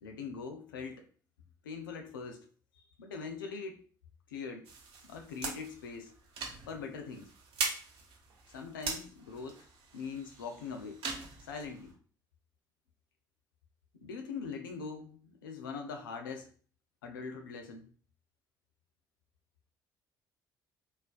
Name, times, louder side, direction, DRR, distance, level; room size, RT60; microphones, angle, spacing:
voice 1, 0.0-1.0 1.6-2.5 2.7-3.8 4.3-4.7 5.1-6.2 6.7-7.3 8.5-9.7 9.9-11.0 11.4-11.9 14.0-16.5 17.0-17.9, left 5 dB, 85° left, 6 dB, 0.5 m, -42 dB
sound 1, 4.6-11.9, right 4 dB, 60° right, 0.9 m, -41 dB
4.0 x 2.5 x 2.3 m, 0.41 s
hypercardioid pair, 50°, 11 cm